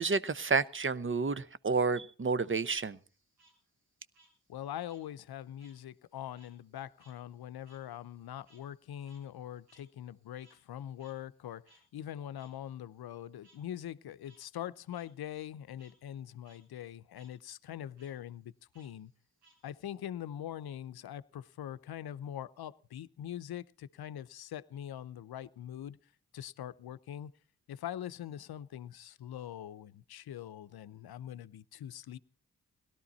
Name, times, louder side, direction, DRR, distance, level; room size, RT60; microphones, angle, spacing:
voice 1, 0.0-3.0, right 4 dB, 30° right, 17 dB, 0.8 m, -30 dB
Frog, 2.9-5.8 6.1-10.7 11.0-11.1 11.6-11.8 12.4-12.5 13.4-13.6 14.1-14.4 14.9-15.0 15.4-15.9 16.3-16.6 16.9-17.3 17.9-18.1 18.7-19.9, right 2 dB, 90° right, 5.9 m, -66 dB
voice 2, 4.5-19.1 19.6-26.0 26.3-27.3 27.7-32.2, left 11 dB, 70° left, 16 dB, 0.7 m, -43 dB
18.0 x 12.5 x 4.1 m, 0.38 s
supercardioid pair, 45°, 38 cm